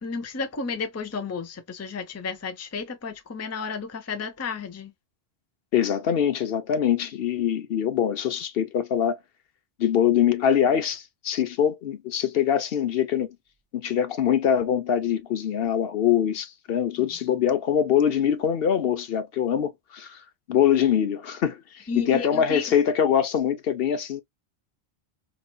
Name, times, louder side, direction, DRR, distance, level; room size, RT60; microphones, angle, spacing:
voice 1, 0.0-4.9 17.0-17.1 21.9-22.8, left 4 dB, 20° left, 0.4 m, -32 dB
voice 2, 5.7-9.2 9.8-13.3 13.7-24.2, left 9 dB, 65° left, 0.8 m, -23 dB
4.0 x 3.0 x 2.2 m
omnidirectional pair, 1.1 m